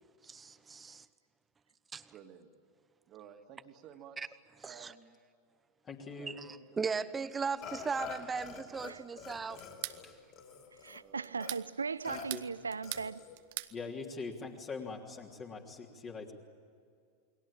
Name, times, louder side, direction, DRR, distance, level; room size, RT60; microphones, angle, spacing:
voice 1, 0.2-1.1 1.9-2.1 4.2-4.3 4.6-4.9 6.3-9.6, right 5 dB, 15° right, 1.0 m, -37 dB
voice 2, 2.1-2.5 3.1-4.4 4.6-5.2 6.1-9.3 10.9-11.4 15.4-15.7, right 8 dB, 35° right, 2.5 m, -56 dB
voice 3, 5.8-6.3 10.0-10.2 12.1-12.4 13.7-16.3, left 4 dB, 25° left, 3.2 m, -43 dB
Burping eructation, 7.6-8.9 9.2-11.0 11.4-11.5 12.0-12.3 12.8-13.4, left 7 dB, 40° left, 4.5 m, -46 dB
sound 1, 9.6-10.0 11.2-11.7 12.1-13.1 13.3-13.7, right 17 dB, 50° right, 1.1 m, -41 dB
voice 4, 10.8-13.2, right 5 dB, 75° right, 0.6 m, -38 dB
29.0 x 22.5 x 8.8 m
figure-of-eight pair, 90°, 0 cm